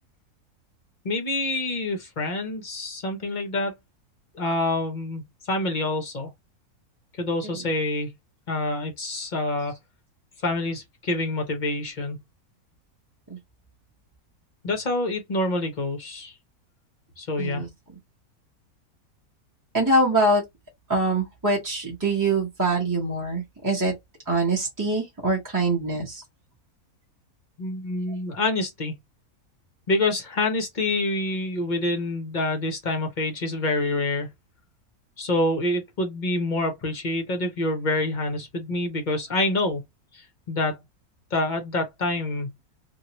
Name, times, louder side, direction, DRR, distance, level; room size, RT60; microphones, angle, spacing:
voice 1, 1.0-3.7 4.4-6.3 7.2-8.1 8.5-9.8 10.4-12.2 14.6-16.3 17.2-17.7 27.6-29.0 29.9-34.3 35.2-39.8 40.1-40.8 41.3-42.5, left 2 dB, 45° left, 0.7 m, -27 dB
voice 2, 17.4-17.7 19.7-20.4 20.9-23.9 24.3-26.2, right 2 dB, 15° right, 0.8 m, -24 dB
2.9 x 2.5 x 2.8 m
omnidirectional pair, 1.6 m